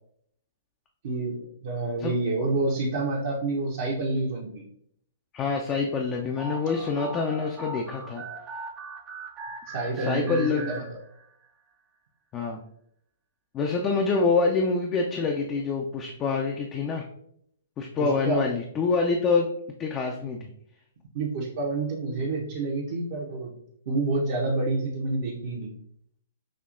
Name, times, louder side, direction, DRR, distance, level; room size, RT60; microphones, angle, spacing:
voice 1, 1.0-4.6 9.7-10.8 18.0-18.4 21.1-23.5 23.9-25.7, right 2 dB, 55° right, -4 dB, 0.9 m, -28 dB
voice 2, 5.3-8.2 10.0-10.7 12.3-12.6 13.5-17.0 17.8-19.5 19.8-20.5, left 4 dB, 25° left, 1 dB, 0.5 m, -26 dB
sound 1, 6.4-11.5, right 3 dB, 20° right, 0.7 m, -40 dB
6.4 x 2.7 x 2.6 m, 0.70 s
figure-of-eight pair, 120°, 0 cm